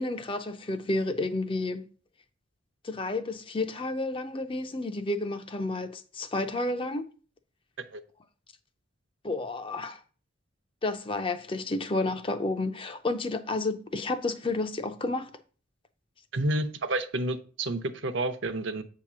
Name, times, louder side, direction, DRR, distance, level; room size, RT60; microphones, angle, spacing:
voice 1, 0.0-1.8 2.8-7.0 9.2-10.0 10.8-15.3, left 2 dB, 25° left, 0.4 m, -31 dB
voice 2, 16.3-18.8, right 2 dB, 65° right, 0.7 m, -30 dB
8.0 x 2.9 x 6.0 m
head